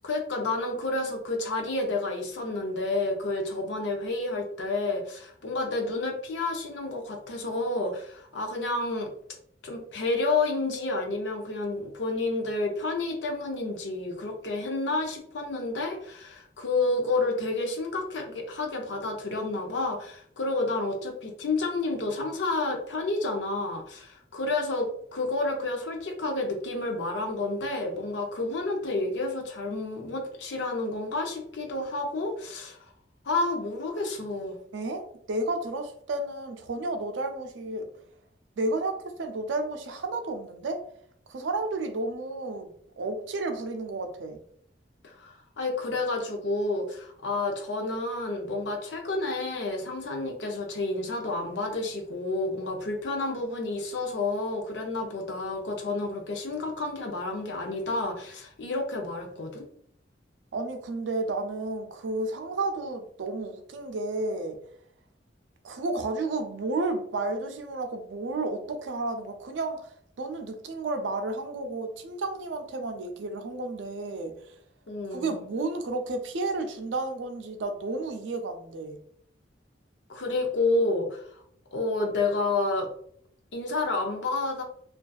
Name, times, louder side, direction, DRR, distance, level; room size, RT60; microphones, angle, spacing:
voice 1, 0.0-9.1 9.6-32.8 33.2-34.6 45.0-59.7 74.9-75.4 80.1-81.3 81.7-82.9 83.5-84.6, left 2 dB, 75° left, 2 dB, 0.5 m, -30 dB
voice 2, 34.7-37.8 38.6-40.8 41.3-42.7 43.0-44.4 60.5-64.6 65.6-74.5 75.1-79.0, right 2 dB, 80° right, 6 dB, 0.4 m, -32 dB
2.5 x 2.3 x 2.2 m, 0.65 s
head